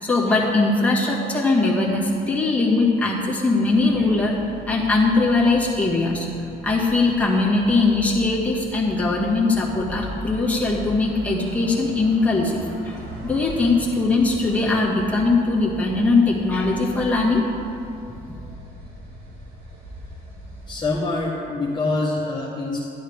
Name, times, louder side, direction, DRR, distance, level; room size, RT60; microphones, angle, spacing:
voice 1, 0.0-4.4 4.7-6.3 6.6-13.0 13.2-17.4, left 3 dB, 10° left, -5 dB, 2.1 m, -20 dB
sound 1, 3.7-20.9, equal, 70° right, 2.2 m, -39 dB
voice 2, 20.7-22.8, left 2 dB, 25° left, -6 dB, 1.4 m, -25 dB
12.0 x 10.0 x 3.6 m, 2.7 s
cardioid pair, 110°, 17 cm